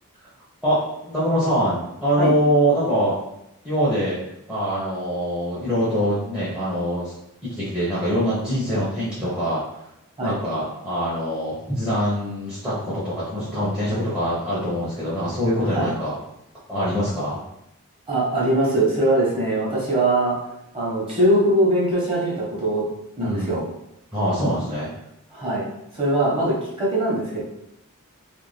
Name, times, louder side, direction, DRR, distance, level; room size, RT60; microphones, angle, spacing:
voice 1, 0.6-3.1 3.6-4.2 4.5-7.1 7.6-9.6 10.2-16.1 16.7-17.4 23.2-23.7 24.1-24.9, equal, 5° right, -10 dB, 0.6 m, -24 dB
voice 2, 18.1-20.3 20.7-22.9 23.2-23.6 25.3-25.7 25.9-27.4, right 1 dB, 25° right, -6 dB, 0.9 m, -21 dB
2.4 x 2.1 x 3.2 m, 0.83 s
head